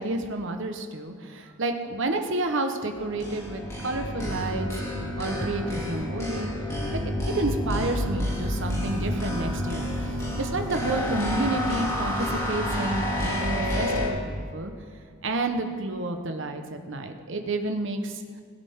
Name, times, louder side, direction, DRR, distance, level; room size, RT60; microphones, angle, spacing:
voice 1, 0.0-4.7 5.2-6.5 6.9-14.7 15.2-18.2, right 2 dB, 65° right, 5 dB, 1.2 m, -30 dB
sound 1, 3.0-14.1, left 1 dB, 15° left, 2.7 m, -29 dB
20.5 x 9.1 x 3.7 m, 2.2 s
head